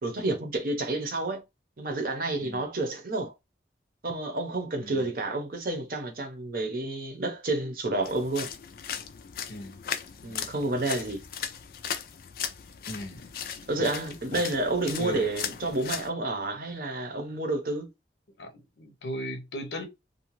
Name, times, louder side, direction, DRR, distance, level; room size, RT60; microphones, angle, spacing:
voice 1, 0.0-1.4 1.8-3.3 4.0-8.5 10.2-11.2 13.7-17.9, right 2 dB, 50° right, 0.7 m, -30 dB
sound 1, 8.0-16.1, left 8 dB, 55° left, 0.3 m, -37 dB
voice 2, 12.9-13.3 13.8-13.9 14.3-14.5 15.0-15.3 18.4-19.9, equal, 75° left, 0.7 m, -37 dB
2.6 x 2.2 x 3.0 m
head